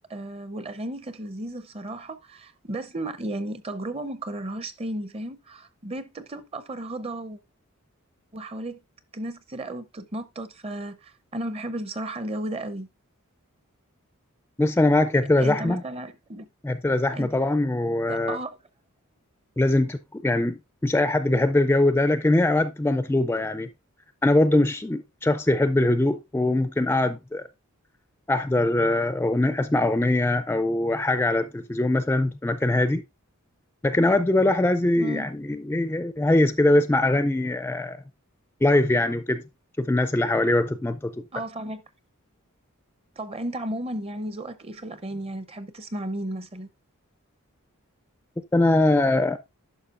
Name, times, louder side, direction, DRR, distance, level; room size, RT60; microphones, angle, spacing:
voice 1, 0.1-7.4 8.3-8.8 9.1-12.9 15.4-16.5 17.1-17.3 18.1-18.6 35.0-35.3 41.3-41.8 43.2-46.7, right 1 dB, 30° right, 0.6 m, -34 dB
voice 2, 14.6-15.8 16.6-18.4 19.6-23.7 24.2-27.4 28.3-33.0 33.8-38.0 38.6-39.4 39.8-41.1 48.5-49.4, left 2 dB, 10° left, 0.3 m, -22 dB
11.0 x 5.7 x 2.4 m
head